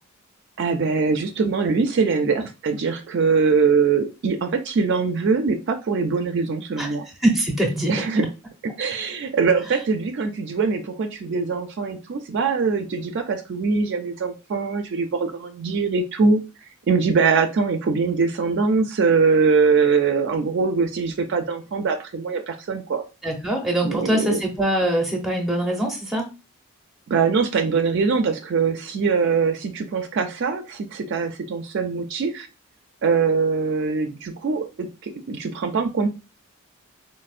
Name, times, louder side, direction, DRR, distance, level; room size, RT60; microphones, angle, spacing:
voice 1, 0.6-7.1 7.9-8.3 8.8-16.4 16.9-23.0 23.8-24.4 27.1-32.5 33.0-36.1, right 5 dB, 55° right, 6 dB, 0.3 m, -22 dB
voice 2, 7.2-7.9 23.2-26.3, right 1 dB, ahead, 1 dB, 0.6 m, -23 dB
4.1 x 2.0 x 2.4 m, 0.29 s
head